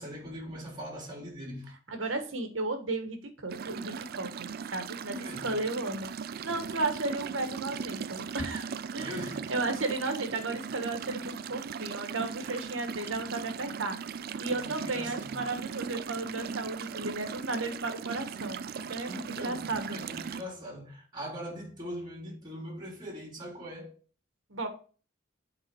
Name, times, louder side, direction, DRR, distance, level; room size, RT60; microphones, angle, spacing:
voice 1, 0.0-2.2 5.1-5.5 9.0-9.5 14.5-15.4 19.1-23.9, equal, 25° right, 2.9 m, -41 dB
voice 2, 1.9-9.2 9.5-20.0 24.5-24.7, right 2 dB, 90° right, 1.5 m, -34 dB
sound 1, 3.5-20.4, right 6 dB, 50° right, 0.4 m, -38 dB
8.3 x 4.0 x 4.6 m
head